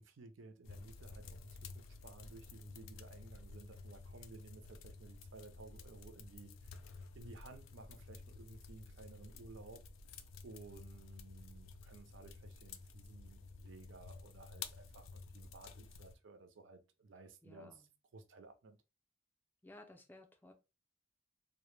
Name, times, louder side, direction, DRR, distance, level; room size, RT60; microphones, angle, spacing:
voice 1, 0.0-9.8 10.1-17.8 18.1-18.8, right 3 dB, 70° right, 0.4 m, -56 dB
sound 1, 0.6-16.2, left 4 dB, 85° left, 0.3 m, -52 dB
voice 2, 17.4-17.9 19.6-20.5, left 2 dB, 10° left, 0.3 m, -57 dB
2.0 x 2.0 x 3.0 m
head